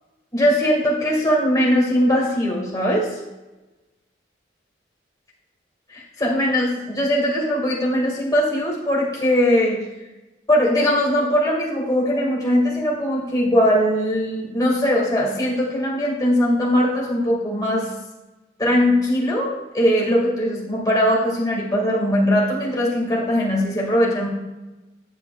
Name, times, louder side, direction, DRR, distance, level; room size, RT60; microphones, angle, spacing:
voice 1, 0.3-3.2 5.9-9.8 10.5-17.9 18.6-24.3, equal, 20° left, -4 dB, 1.8 m, -20 dB
8.8 x 8.5 x 2.3 m, 1.1 s
head